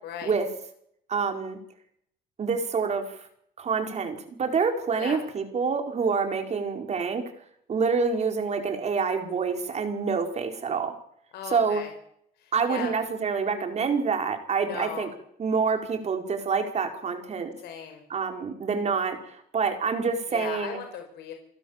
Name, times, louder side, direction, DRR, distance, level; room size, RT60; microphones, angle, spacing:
voice 1, 0.0-0.3 5.0-5.2 11.3-11.9 12.4-12.9 14.6-15.1 17.6-18.0 20.3-21.3, left 8 dB, 75° left, 5 dB, 4.8 m, -37 dB
voice 2, 1.1-1.6 2.4-3.3 3.6-7.2 7.7-11.0 11.5-11.8 12.5-15.1 15.4-17.5 18.1-20.8, right 5 dB, 40° right, 5 dB, 4.9 m, -27 dB
29.0 x 16.5 x 7.5 m, 0.71 s
cardioid pair, 110°, 17 cm